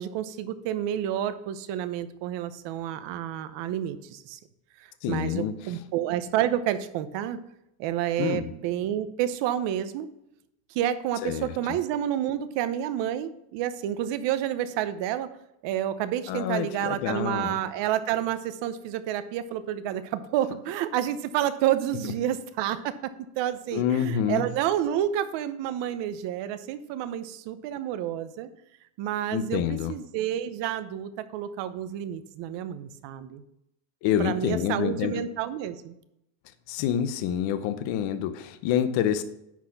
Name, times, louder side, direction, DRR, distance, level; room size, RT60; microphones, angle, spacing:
voice 1, 0.0-4.4 4.8-7.4 7.8-10.1 10.7-15.3 15.6-28.5 29.0-33.4 34.2-35.9, right 11 dB, 60° right, 12 dB, 0.8 m, -29 dB
voice 2, 5.0-5.5 8.2-8.5 11.2-11.8 16.3-17.6 23.7-24.5 29.3-30.0 34.0-35.2 36.7-39.2, left 9 dB, 65° left, 11 dB, 0.8 m, -27 dB
10.5 x 4.2 x 5.8 m, 0.82 s
cardioid pair, 170°, 49 cm